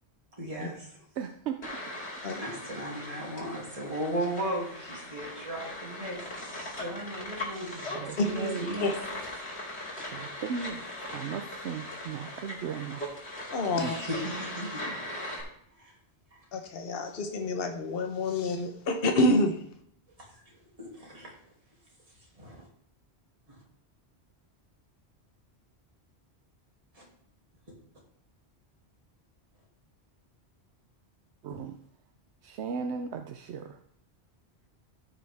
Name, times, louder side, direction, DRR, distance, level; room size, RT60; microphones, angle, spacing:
voice 1, 0.4-1.0 2.3-8.9 13.8-15.0 15.8-15.9 16.3-16.4 20.2-21.4 22.4-22.7 23.5-23.6 26.9-27.1, right 1 dB, 35° right, -3 dB, 2.7 m, -37 dB
voice 2, 1.1-1.8 7.9-8.7 10.1-13.1 13.7-14.0 31.4-31.8 32.4-33.8, right 6 dB, 85° right, 6 dB, 1.0 m, -36 dB
sound 1, 1.6-15.4, left 1 dB, 80° left, 2.8 m, -40 dB
voice 3, 13.5-13.9 16.5-19.6, left 1 dB, 60° left, 4 dB, 1.2 m, -27 dB
14.0 x 6.1 x 3.4 m, 0.68 s
omnidirectional pair, 1.1 m